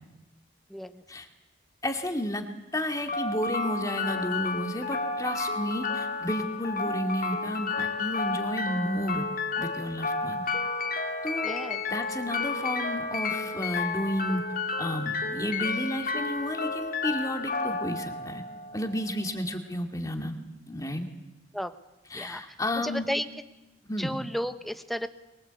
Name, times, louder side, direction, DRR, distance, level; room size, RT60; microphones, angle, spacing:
voice 1, 0.7-1.0 11.4-11.8 21.5-21.7 22.1-22.4 22.8-23.3 24.0-25.1, equal, ahead, 9 dB, 1.1 m, -33 dB
voice 2, 1.8-2.5 2.7-9.2 9.6-10.4 11.2-11.5 11.9-14.4 14.8-18.4 18.7-20.4 20.7-21.1 22.1-23.1 23.8-24.2, equal, 20° left, 4 dB, 2.4 m, -32 dB
sound 1, 3.1-19.1, left 3 dB, 45° left, 2.2 m, -31 dB
24.0 x 23.0 x 8.3 m, 0.98 s
head